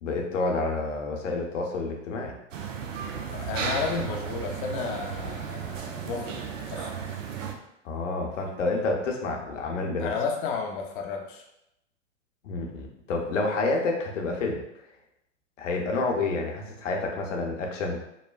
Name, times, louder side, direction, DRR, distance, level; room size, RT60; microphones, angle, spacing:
voice 1, 0.0-2.3 7.8-10.1 12.4-14.6 15.6-18.0, left 3 dB, 75° left, 1 dB, 0.8 m, -29 dB
sound 1, 2.5-7.5, right 6 dB, 80° right, 0.5 m, -34 dB
voice 2, 3.3-6.9 10.0-11.4, left 5 dB, 45° left, 2 dB, 0.5 m, -32 dB
3.1 x 2.1 x 2.2 m, 0.82 s
hypercardioid pair, 115°, 37 cm